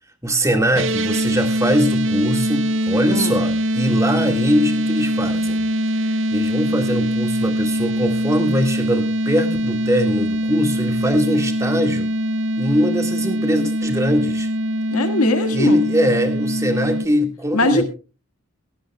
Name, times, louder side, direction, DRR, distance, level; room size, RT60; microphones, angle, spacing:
voice 1, 0.2-5.6 6.0-12.1 12.6-14.5 15.5-17.8, equal, 15° right, 6 dB, 1.7 m, -21 dB
sound 1, 0.7-17.1, equal, 55° right, 0.7 m, -22 dB
voice 2, 14.9-15.8 17.5-17.8, left 2 dB, 85° left, 8 dB, 1.8 m, -20 dB
17.0 x 16.0 x 2.3 m, 0.32 s
head